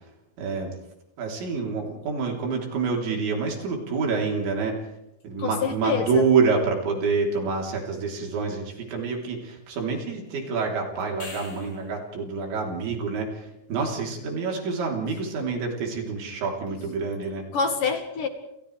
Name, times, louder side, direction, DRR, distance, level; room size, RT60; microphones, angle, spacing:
voice 1, 0.4-0.7 1.2-4.8 5.2-17.5, right 4 dB, 85° right, 0 dB, 6.0 m, -27 dB
voice 2, 5.4-6.2 17.5-18.3, left 5 dB, 60° left, 5 dB, 2.7 m, -26 dB
sound 1, 11.0-12.0 16.7-16.8, left 2 dB, 35° left, 7.4 m, -42 dB
29.5 x 29.5 x 3.4 m, 0.86 s
omnidirectional pair, 5.1 m